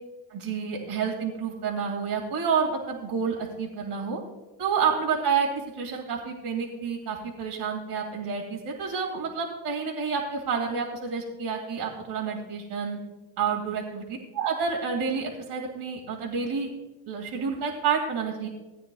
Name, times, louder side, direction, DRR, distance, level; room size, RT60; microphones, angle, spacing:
voice 1, 0.3-4.2 4.6-5.5 5.7-13.0 13.4-14.0 14.3-16.7 17.1-18.5, right 6 dB, 55° right, -1 dB, 2.3 m, -29 dB
17.5 x 9.4 x 2.3 m, 1.2 s
cardioid pair, 105°, 46 cm